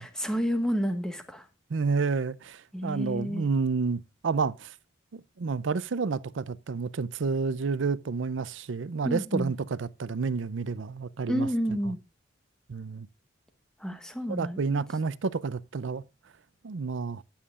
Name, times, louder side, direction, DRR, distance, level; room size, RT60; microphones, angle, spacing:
voice 1, 0.0-1.5 2.7-3.5 9.0-9.5 11.3-12.0 13.8-14.8, equal, 5° left, 1.4 m, -30 dB
voice 2, 1.7-4.7 5.1-11.5 12.7-13.1 14.3-16.0 16.6-17.2, right 4 dB, 75° right, 0.5 m, -30 dB
19.5 x 7.2 x 2.4 m
head